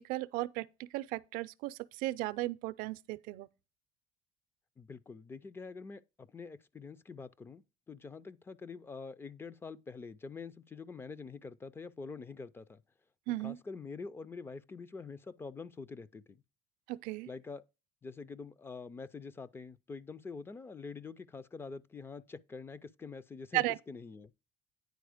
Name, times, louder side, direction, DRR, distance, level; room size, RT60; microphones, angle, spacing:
voice 1, 0.0-3.5 13.3-13.6 16.9-17.3 23.5-23.8, right 18 dB, 75° right, 0.5 m, -35 dB
voice 2, 4.8-12.8 13.4-16.4 17.3-17.6 18.0-24.3, left 4 dB, 15° left, 0.3 m, -46 dB
9.3 x 4.3 x 4.9 m
cardioid pair, 150°, 14 cm